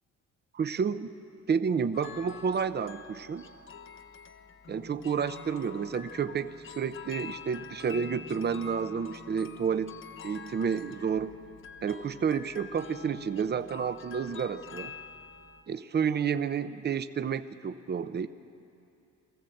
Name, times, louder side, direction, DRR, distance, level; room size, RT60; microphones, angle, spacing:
voice 1, 0.5-1.1 1.5-3.5 4.7-10.0 10.2-11.3 11.8-14.9 15.7-18.3, right 6 dB, 35° right, 12 dB, 0.7 m, -30 dB
sound 1, 1.9-15.6, left 6 dB, 40° left, 0.9 m, -46 dB
23.5 x 14.5 x 7.8 m, 2.7 s
cardioid pair, 90°, 30 cm